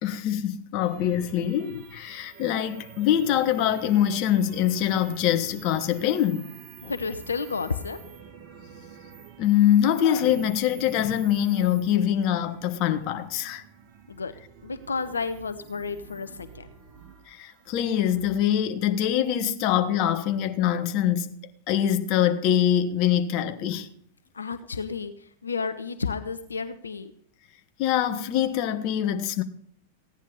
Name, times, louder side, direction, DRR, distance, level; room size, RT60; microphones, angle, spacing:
voice 1, 0.0-6.5 6.8-6.9 9.4-13.6 17.3-21.3 21.7-23.9 27.8-29.4, left 10 dB, 45° left, 1.5 m, -24 dB
sound 1, 0.8-18.4, right 7 dB, 40° right, 2.5 m, -47 dB
voice 2, 6.8-8.0 14.1-14.3 14.6-16.7 24.3-27.1, left 5 dB, 85° left, 0.9 m, -31 dB
16.5 x 10.0 x 5.5 m
hypercardioid pair, 95°, 0 cm